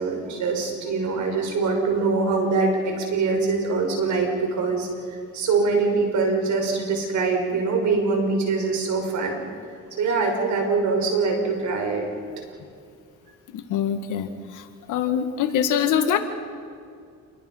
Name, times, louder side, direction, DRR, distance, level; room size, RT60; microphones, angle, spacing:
voice 1, 0.0-4.9 5.3-9.4 10.0-12.1, right 4 dB, 70° right, 3 dB, 5.9 m, -23 dB
voice 2, 13.5-14.3 14.5-16.2, left 9 dB, 90° left, 7 dB, 1.9 m, -24 dB
28.5 x 22.0 x 5.7 m, 2.3 s
cardioid pair, 90°, 30 cm